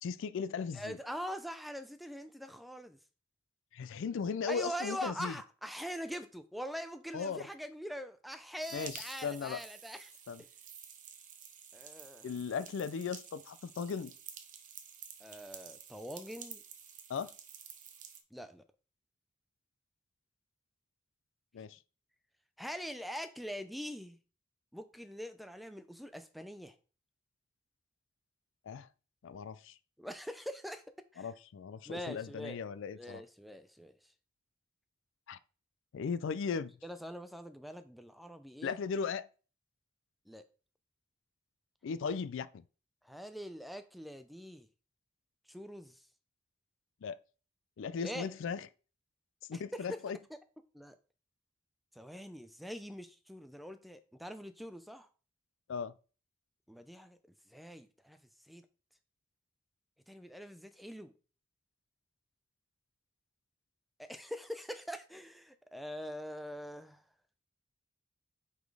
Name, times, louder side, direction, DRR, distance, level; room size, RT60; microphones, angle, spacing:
voice 1, 0.0-1.0 3.7-5.3 7.1-7.5 8.7-9.0 9.2-9.6 10.3-10.4 12.2-14.1 17.1-17.3 21.5-21.8 28.7-28.9 29.2-29.8 31.2-33.2 35.3-35.4 35.9-36.7 38.6-39.3 41.8-42.6 47.0-47.2 47.8-48.7 49.5-50.2 55.7-55.9, left 6 dB, 65° left, 0.4 m, -37 dB
voice 2, 0.7-3.0 4.4-10.1 10.4-10.5 11.7-12.3 15.2-16.6 18.3-18.6 22.6-24.2 24.7-26.8 30.0-30.8 31.1-31.3 31.8-32.6 32.9-34.1 36.8-38.8 40.3-40.5 43.0-44.7 45.5-46.1 48.0-48.3 49.5-50.4 50.7-51.0 51.9-55.1 56.7-57.2 57.5-58.2 58.4-58.7 60.1-61.1 64.0-67.1, equal, ahead, 0.4 m, -43 dB
sound 1, 8.6-18.2, right 8 dB, 40° right, 0.8 m, -51 dB
5.2 x 3.9 x 4.7 m
head